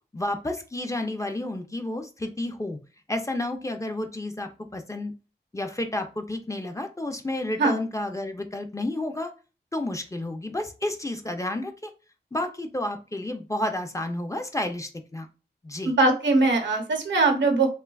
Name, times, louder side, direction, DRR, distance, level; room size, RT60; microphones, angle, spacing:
voice 1, 0.1-2.8 3.1-5.1 5.5-9.3 9.7-11.9 12.3-15.3 15.6-15.9, left 1 dB, 15° left, 6 dB, 0.4 m, -31 dB
voice 2, 15.8-17.7, right 3 dB, 85° right, 3 dB, 0.7 m, -21 dB
3.2 x 2.2 x 2.2 m, 0.33 s
cardioid pair, 55°, 18 cm